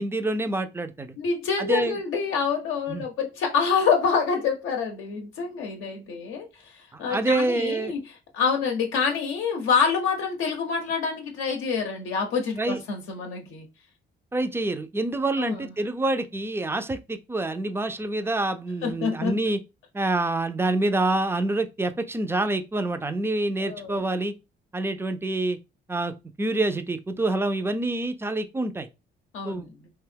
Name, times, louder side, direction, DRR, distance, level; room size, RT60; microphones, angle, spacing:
voice 1, 0.0-1.2 1.6-2.0 2.9-3.0 6.9-7.9 12.5-12.8 14.3-19.6 19.9-24.3 24.7-25.6 25.9-28.9 29.4-29.7, right 2 dB, 10° right, 0.3 m, -27 dB
voice 2, 1.2-13.7 15.4-15.7 18.8-19.4 23.6-24.0 29.3-29.9, left 5 dB, 85° left, 0.6 m, -27 dB
2.8 x 2.2 x 3.3 m
cardioid pair, 90°, 20 cm